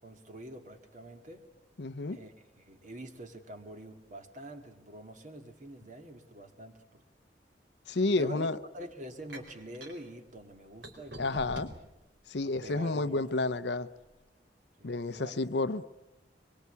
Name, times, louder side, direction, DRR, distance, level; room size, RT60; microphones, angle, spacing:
voice 1, 0.0-1.4 2.1-7.0 8.2-11.7 12.4-13.3 14.8-15.4, right 1 dB, 45° right, 2.2 m, -46 dB
voice 2, 1.8-2.2 7.9-8.6 11.2-11.7 12.3-13.9 14.8-15.8, left 2 dB, 70° left, 0.8 m, -30 dB
sound 1, 9.3-10.0 10.8-11.9 12.5-13.4, right 1 dB, 70° right, 4.5 m, -45 dB
25.0 x 22.5 x 8.3 m
head